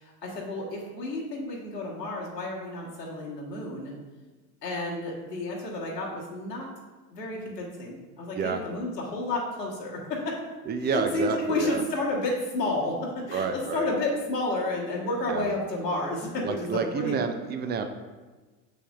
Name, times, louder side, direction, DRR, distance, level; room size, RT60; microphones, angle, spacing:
voice 1, 0.0-3.9 4.6-6.7 7.1-10.4 10.9-17.2, left 2 dB, 85° left, -4 dB, 1.6 m, -31 dB
voice 2, 10.7-11.8 13.3-13.8 15.3-15.5 16.4-17.8, right 5 dB, 20° right, 7 dB, 0.5 m, -29 dB
6.8 x 5.8 x 2.5 m, 1.3 s
figure-of-eight pair, 75°, 48 cm